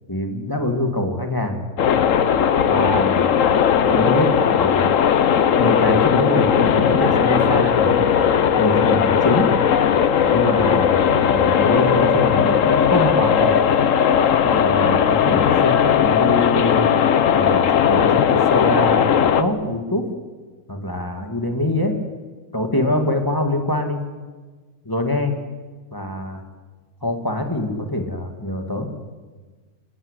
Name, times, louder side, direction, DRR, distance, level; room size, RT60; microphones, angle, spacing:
voice 1, 0.1-1.6 2.6-3.3 3.8-4.9 5.6-8.1 8.6-9.5 10.3-13.6 14.4-17.0 17.3-19.1 19.4-20.1 20.7-22.0 22.5-24.0 24.9-25.4 25.9-26.4 27.0-28.9, left 1 dB, 15° left, 4 dB, 2.3 m, -24 dB
sound 1, 1.8-19.4, left 8 dB, 60° left, 1.2 m, -17 dB
28.5 x 13.5 x 10.0 m, 1.4 s
omnidirectional pair, 1.6 m